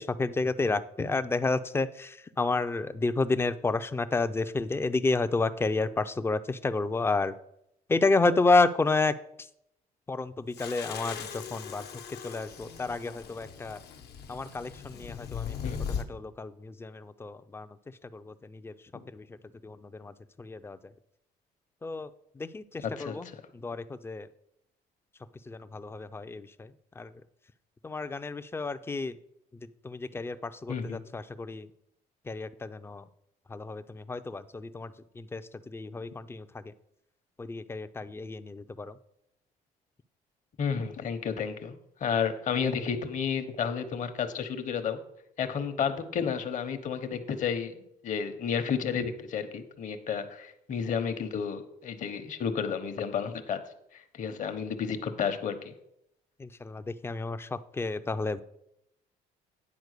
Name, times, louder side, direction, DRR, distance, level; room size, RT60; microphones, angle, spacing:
voice 1, 0.0-7.3 7.9-9.2 10.1-11.9 12.2-13.8 14.3-15.6 15.9-17.7 18.1-18.7 19.1-19.2 19.6-20.1 20.4-20.8 21.8-22.1 22.4-23.3 23.6-24.3 25.5-26.7 27.0-27.1 27.8-29.2 29.8-31.7 32.3-33.0 33.5-35.4 35.7-36.5 37.4-38.9 56.4-58.4, left 3 dB, 15° left, 12 dB, 0.4 m, -30 dB
sound 1, 10.5-16.1, left 7 dB, 80° left, 1.0 m, -39 dB
voice 2, 22.8-23.4 30.7-31.0 40.6-41.7 42.0-45.0 45.4-53.6 53.9-55.7, left 7 dB, 50° left, 9 dB, 1.0 m, -31 dB
9.6 x 4.4 x 6.5 m, 0.78 s
cardioid pair, 110°, 17 cm